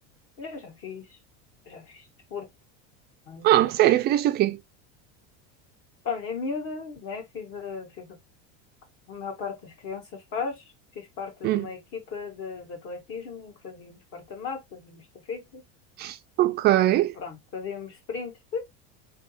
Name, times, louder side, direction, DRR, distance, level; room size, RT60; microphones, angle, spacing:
voice 1, 0.4-1.2 1.6-2.5 3.3-3.5 6.0-8.2 9.1-10.6 10.9-15.6 17.2-18.6, left 5 dB, 45° left, 1.8 m, -36 dB
voice 2, 3.4-4.6 11.4-11.7 16.0-17.1, right 14 dB, 30° right, 0.4 m, -21 dB
4.1 x 3.3 x 2.9 m
cardioid pair, 155°, 32 cm